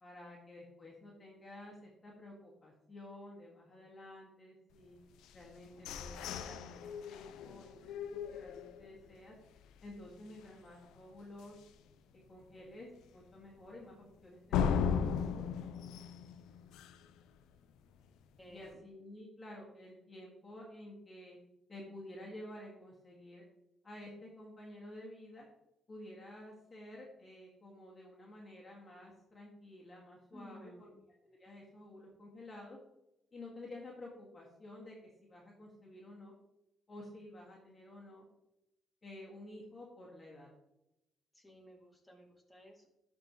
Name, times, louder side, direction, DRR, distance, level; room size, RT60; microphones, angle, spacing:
voice 1, 0.0-5.0 5.3-9.4 9.8-11.6 12.1-15.0 15.3-15.5 18.5-21.4 21.7-23.4 23.8-25.5 25.9-30.7 31.2-32.8 33.3-36.3 36.9-38.2 39.0-40.5, left 1 dB, 30° left, -3 dB, 2.1 m, -51 dB
sound 1, 5.2-9.1 9.6-9.7 10.0-10.4 10.8-10.9 11.4-11.5 14.5-17.2, left 7 dB, 90° left, 0.4 m, -37 dB
voice 2, 18.4-18.8 30.3-31.0 41.3-42.9, equal, 5° left, -3 dB, 2.6 m, -55 dB
12.5 x 4.5 x 3.2 m, 0.88 s
cardioid pair, 90°, 0 cm